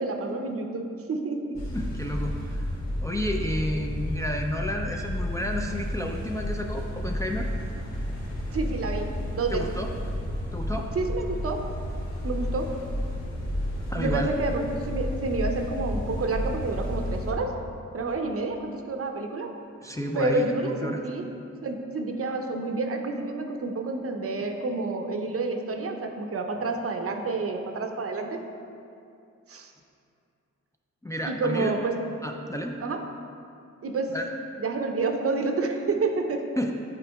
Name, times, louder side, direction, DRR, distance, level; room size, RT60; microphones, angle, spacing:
voice 1, 0.0-1.6 8.5-9.6 10.9-11.7 12.2-12.7 13.9-17.6 17.9-19.5 20.1-21.2 21.6-28.4 29.5-29.7 31.3-31.9 32.8-33.0 33.8-34.1 34.6-36.5, right 3 dB, 50° right, 4 dB, 0.6 m, -29 dB
sound 1, 1.5-17.3, equal, 60° left, 1.3 m, -32 dB
voice 2, 1.7-2.7 3.0-7.5 9.5-9.9 10.5-10.9 13.9-14.3 19.8-21.0 31.0-31.7 32.2-32.7 34.1-34.3 36.6-36.7, equal, 10° left, 1 dB, 0.3 m, -31 dB
8.5 x 4.9 x 2.2 m, 2.5 s
cardioid pair, 70°, 30 cm